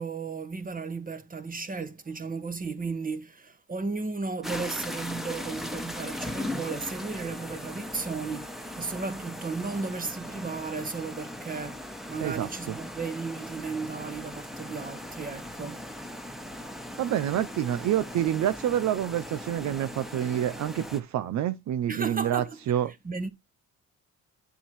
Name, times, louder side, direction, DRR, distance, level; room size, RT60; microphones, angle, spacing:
voice 1, 0.0-15.9 21.9-23.3, right 4 dB, 30° right, 1.6 m, -35 dB
sound 1, 4.4-21.0, left 1 dB, ahead, 1.4 m, -39 dB
voice 2, 12.2-12.7 17.0-22.9, right 11 dB, 65° right, 0.6 m, -28 dB
9.3 x 6.9 x 3.1 m
cardioid pair, 90°, 30 cm